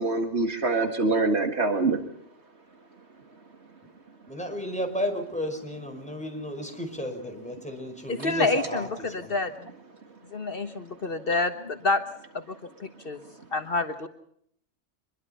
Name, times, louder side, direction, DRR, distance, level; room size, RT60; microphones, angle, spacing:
voice 1, 0.0-2.0, right 3 dB, 70° right, 6 dB, 2.2 m, -24 dB
voice 2, 4.3-9.3, left 1 dB, 5° left, 3 dB, 5.2 m, -33 dB
voice 3, 8.1-9.5 10.3-12.0 12.3-13.2 13.5-14.1, left 3 dB, 55° left, 8 dB, 1.5 m, -28 dB
25.5 x 21.5 x 5.7 m, 0.67 s
omnidirectional pair, 1.2 m